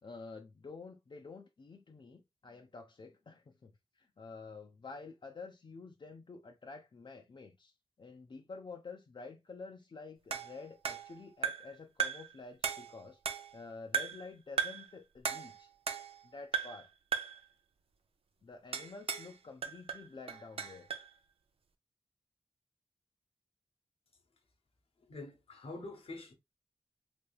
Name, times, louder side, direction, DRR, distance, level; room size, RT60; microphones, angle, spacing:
voice 1, 0.0-3.7 4.0-7.7 8.0-13.2 13.5-15.7 16.2-16.9 18.4-20.9, left 4 dB, 55° left, 0.5 m, -49 dB
sound 1, 10.3-11.7 12.0-12.3 12.6-13.6 13.9-14.3 14.6-14.9 15.2-16.2 16.5-16.9 17.1-17.4 18.7-19.3 19.6-21.1, right 7 dB, 80° right, 0.5 m, -37 dB
voice 2, 25.1-26.3, left 2 dB, 85° left, 0.9 m, -45 dB
3.4 x 3.3 x 2.3 m
cardioid pair, 45°, 10 cm